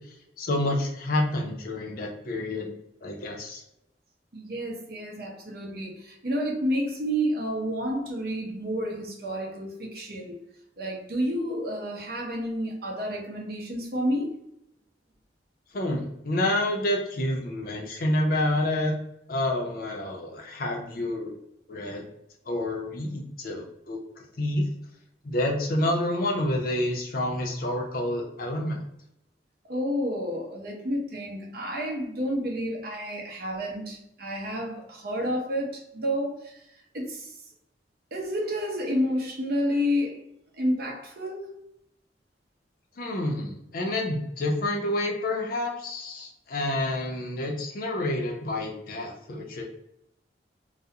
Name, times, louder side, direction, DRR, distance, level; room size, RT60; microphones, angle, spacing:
voice 1, 0.4-2.7 3.0-3.6 15.7-18.9 19.3-21.4 21.7-22.0 22.5-24.6 25.2-28.8 43.0-49.6, left 1 dB, 55° left, 0.5 m, -28 dB
voice 2, 4.3-10.4 10.8-14.3 29.6-36.6 36.9-37.4 38.1-40.2 40.5-41.6, equal, 60° right, 0.6 m, -30 dB
2.3 x 2.0 x 2.7 m
head